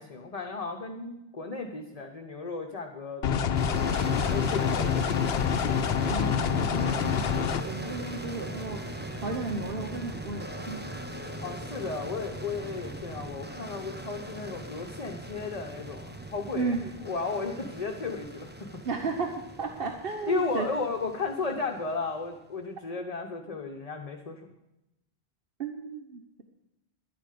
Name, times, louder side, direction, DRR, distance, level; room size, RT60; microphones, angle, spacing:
voice 1, 0.0-3.6 4.2-5.3 11.4-16.7 17.0-18.8 20.3-24.5, left 4 dB, 40° left, 3 dB, 1.0 m, -34 dB
sound 1, 3.2-7.6, left 7 dB, 80° left, 0.9 m, -26 dB
sound 2, 3.5-22.2, right 1 dB, 10° right, 0.8 m, -39 dB
sound 3, 5.9-13.0, equal, 10° left, 1.3 m, -47 dB
voice 2, 6.1-10.8 16.5-16.9 18.8-20.7 25.6-26.4, right 3 dB, 65° right, 4 dB, 1.2 m, -34 dB
11.5 x 10.5 x 6.6 m, 0.91 s
omnidirectional pair, 1.0 m